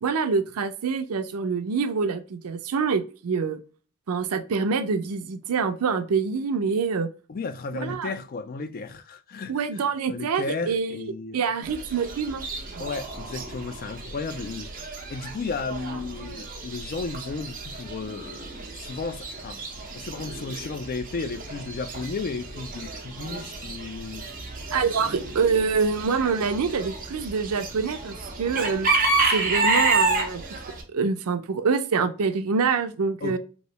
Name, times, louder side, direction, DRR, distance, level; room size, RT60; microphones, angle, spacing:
voice 1, 0.0-3.6 4.1-7.1 7.7-8.1 9.5-12.5 12.7-12.8 24.7-28.9 29.3-30.4 30.9-33.4, right 5 dB, 90° right, 0.5 m, -26 dB
voice 2, 7.3-11.4 12.8-14.7 15.1-19.6 19.9-24.3 33.2-33.4, left 4 dB, 40° left, 0.3 m, -34 dB
Chicken rooster / Bird, 11.6-30.8, right 3 dB, 40° right, 0.8 m, -30 dB
3.1 x 2.7 x 2.9 m
head